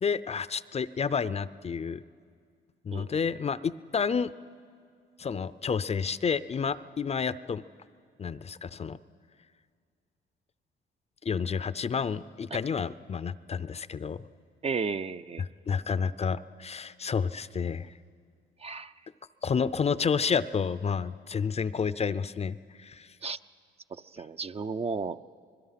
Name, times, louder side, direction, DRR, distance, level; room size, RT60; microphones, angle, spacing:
voice 1, 0.0-2.0 2.8-4.3 5.2-7.6 8.2-9.0 11.2-14.2 15.4-17.9 19.4-23.1, left 6 dB, 30° left, 16 dB, 0.5 m, -30 dB
voice 2, 14.6-15.4 18.6-18.9 23.2-23.4 23.9-25.2, right 5 dB, 30° right, 11 dB, 0.5 m, -33 dB
26.0 x 21.0 x 5.8 m, 2.2 s
cardioid pair, 90°, 20 cm